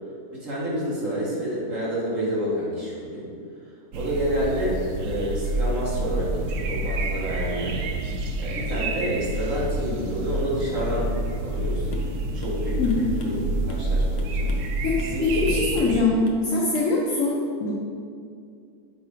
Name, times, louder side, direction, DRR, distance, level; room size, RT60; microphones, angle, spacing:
voice 1, 0.3-3.3 3.9-7.8 8.4-11.1 11.4-11.9 12.3-13.4 13.7-14.6 15.0-15.6, equal, 55° right, -7 dB, 1.9 m, -29 dB
sound 1, 3.9-16.0, right 1 dB, 80° right, 1.2 m, -28 dB
sound 2, 11.9-12.1 12.4-12.6 12.9-13.9 14.2-14.7 15.0-15.2 15.5-16.0 16.3-16.5 16.7-16.9, left 2 dB, 80° left, 1.3 m, -39 dB
voice 2, 15.4-16.2 16.4-17.7, left 3 dB, 60° left, -5 dB, 1.2 m, -23 dB
7.3 x 4.8 x 3.6 m, 2.3 s
omnidirectional pair, 1.6 m